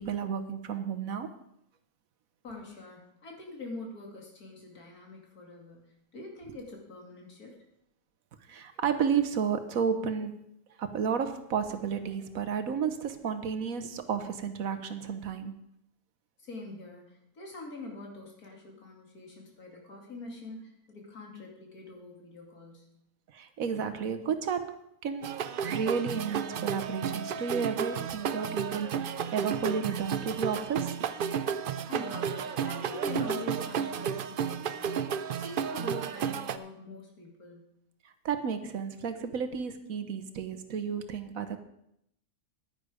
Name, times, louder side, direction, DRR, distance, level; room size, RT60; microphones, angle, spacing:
voice 1, 0.0-1.4 6.5-6.6 8.5-10.4 10.8-15.5 23.3-24.8 25.0-31.0 38.0-41.6, right 6 dB, 70° right, 9 dB, 1.3 m, -32 dB
voice 2, 2.4-7.6 16.4-22.9 31.9-34.9 35.3-37.6, left 2 dB, 75° left, 0 dB, 2.9 m, -44 dB
sound 1, 25.2-36.6, right 7 dB, 85° right, 0.4 m, -32 dB
10.5 x 10.0 x 5.0 m, 0.77 s
omnidirectional pair, 1.6 m